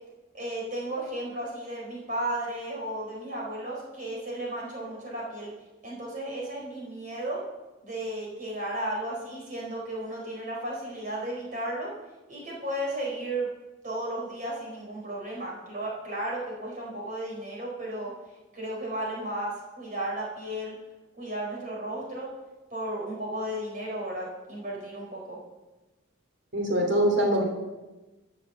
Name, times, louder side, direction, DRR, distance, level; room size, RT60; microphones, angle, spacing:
voice 1, 0.3-5.5 5.8-7.4 7.8-11.9 12.3-13.5 13.8-18.1 18.5-20.7 21.2-22.3 22.7-25.4, right 1 dB, 40° right, -3 dB, 4.6 m, -34 dB
voice 2, 26.5-27.4, right 1 dB, 60° right, 1 dB, 3.1 m, -23 dB
13.0 x 6.7 x 6.8 m, 1.1 s
head